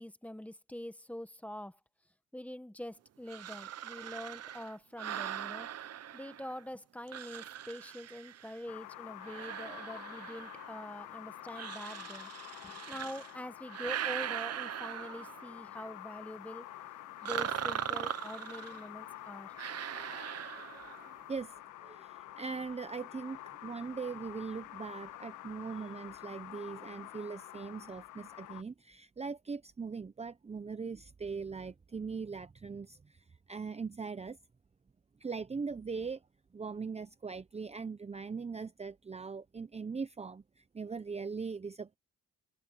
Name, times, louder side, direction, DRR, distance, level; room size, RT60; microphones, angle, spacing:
voice 1, 0.0-1.8 2.3-5.7 6.1-12.3 12.6-16.7 17.2-19.5, left 1 dB, 5° left, 1.4 m, -45 dB
sound 1, 3.3-6.6 7.1-8.7 9.2-10.9 11.5-13.3 13.7-15.6 17.2-18.9 19.6-21.1, right 10 dB, 55° right, 1.0 m, -40 dB
sound 2, 8.7-28.6, left 14 dB, 90° left, 1.3 m, -48 dB
voice 2, 20.6-34.4 35.2-36.2 36.5-42.0, right 5 dB, 20° right, 0.8 m, -41 dB
cardioid pair, 90°, 30 cm